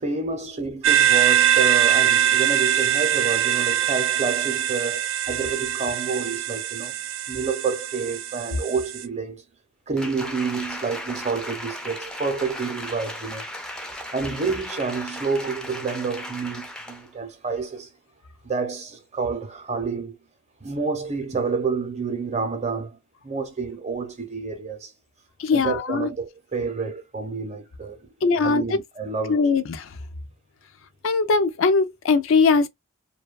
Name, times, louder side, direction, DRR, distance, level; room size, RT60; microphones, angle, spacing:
voice 1, 0.0-7.0 7.3-9.4 9.9-13.5 14.1-17.9 18.4-20.2 20.6-23.0 23.2-24.9 25.5-28.1 28.4-29.4, right 4 dB, 35° right, 0.7 m, -29 dB
sound 1, 0.8-9.0, right 11 dB, 65° right, 0.4 m, -22 dB
Applause, 10.0-17.1 17.5-17.6, left 1 dB, 5° left, 0.4 m, -36 dB
voice 2, 25.4-26.1 28.2-28.8 29.3-30.0 31.0-32.7, left 4 dB, 65° left, 0.4 m, -20 dB
2.6 x 2.2 x 2.3 m
head